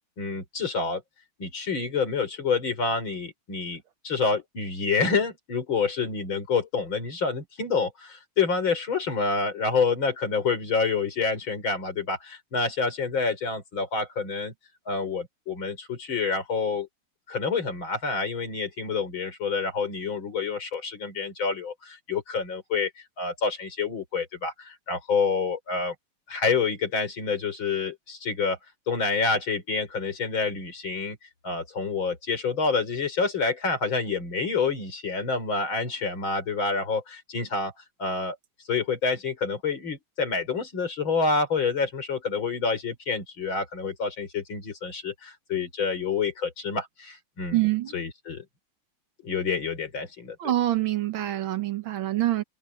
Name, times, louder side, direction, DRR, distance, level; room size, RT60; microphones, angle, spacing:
voice 1, 0.2-1.0 1.4-14.5 14.9-16.9 17.3-25.9 26.3-28.6 28.9-31.2 31.4-37.7 38.0-38.4 38.7-47.6 47.9-48.4 49.2-50.4, left 4 dB, 65° left, 5.0 m, -28 dB
voice 2, 47.5-47.9 50.4-52.4, right 15 dB, 70° right, 1.7 m, -25 dB
omnidirectional pair, 2.4 m